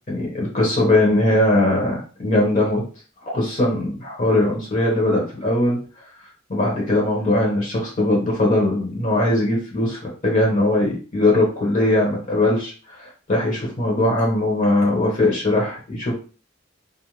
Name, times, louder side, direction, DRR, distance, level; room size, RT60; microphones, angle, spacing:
voice 1, 0.1-2.9 3.2-5.8 6.5-16.1, left 1 dB, 45° left, -2 dB, 0.9 m, -20 dB
2.5 x 2.2 x 3.0 m, 0.37 s
head